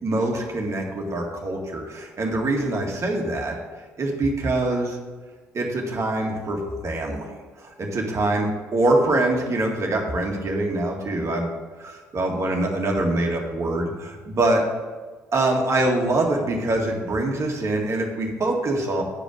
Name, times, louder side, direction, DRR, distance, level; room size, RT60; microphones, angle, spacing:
voice 1, 0.0-3.6 4.0-5.0 5.5-7.4 7.6-11.5 11.8-14.6 15.3-19.0, right 2 dB, 45° right, 1 dB, 1.9 m, -24 dB
9.0 x 5.0 x 7.6 m, 1.4 s
hypercardioid pair, 50°, 7 cm